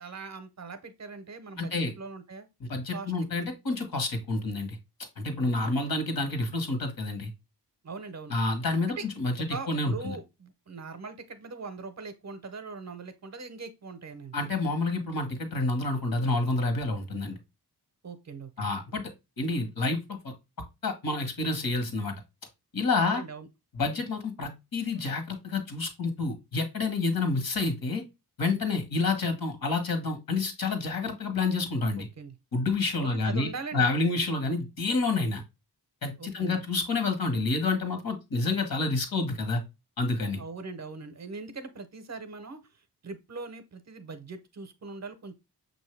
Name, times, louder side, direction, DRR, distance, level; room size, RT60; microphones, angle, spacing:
voice 1, 0.0-2.5 2.9-3.5 5.4-5.8 7.8-8.4 8.9-9.1 9.5-14.3 18.0-18.7 23.0-23.5 32.0-32.3 32.9-33.9 36.2-36.6 40.4-42.6 43.0-45.3, right 4 dB, 45° right, 0.6 m, -41 dB
voice 2, 1.6-1.9 2.6-4.8 5.2-7.3 8.3-10.2 14.3-17.4 18.6-19.0 19.4-20.3 20.8-22.1 22.7-23.2 23.7-28.0 28.4-32.1 32.5-33.5 33.7-35.4 36.0-39.6 40.0-40.4, left 3 dB, 60° left, 1.3 m, -28 dB
6.3 x 2.7 x 3.1 m
wide cardioid pair, 150°, 39 cm